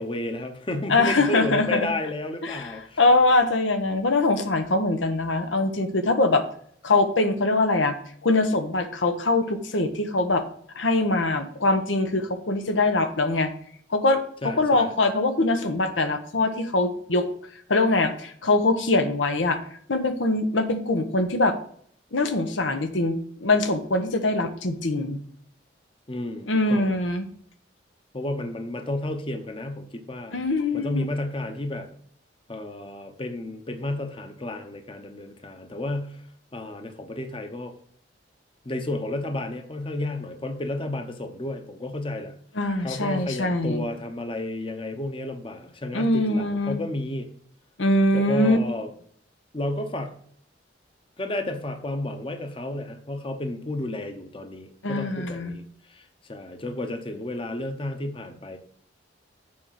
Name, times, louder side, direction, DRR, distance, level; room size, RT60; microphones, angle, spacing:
voice 1, 0.0-3.0 14.4-14.9 26.1-27.0 28.1-30.4 30.7-31.9 32.5-36.2 36.5-37.7 38.6-42.3 42.8-47.3 48.1-48.9 49.5-50.1 51.2-58.6, left 1 dB, 30° left, 6 dB, 0.8 m, -32 dB
voice 2, 0.9-1.9 2.4-2.7 3.0-6.4 6.8-7.9 8.2-10.4 10.7-13.5 13.9-17.3 17.7-19.6 19.9-21.5 22.1-25.2 26.5-27.3 30.3-31.0 42.6-43.9 45.9-46.8 47.8-48.6 54.8-55.5, left 2 dB, 90° left, 8 dB, 1.0 m, -23 dB
7.6 x 4.8 x 5.8 m, 0.62 s
head